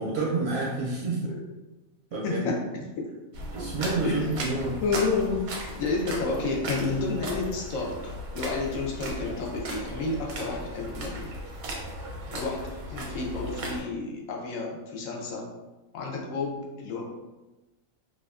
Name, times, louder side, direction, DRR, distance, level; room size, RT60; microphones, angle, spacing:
voice 1, 0.0-1.3 2.1-2.5 3.5-4.8, right 3 dB, 65° right, -4 dB, 0.7 m, -29 dB
voice 2, 2.2-2.7 3.0-3.1 4.0-4.3 4.8-11.3 12.3-15.5 15.9-17.0, left 3 dB, 75° left, -1 dB, 1.0 m, -30 dB
sound 1, 3.3-13.8, right 1 dB, 85° right, 1.0 m, -37 dB
2.7 x 2.3 x 2.3 m, 1.1 s
omnidirectional pair, 1.4 m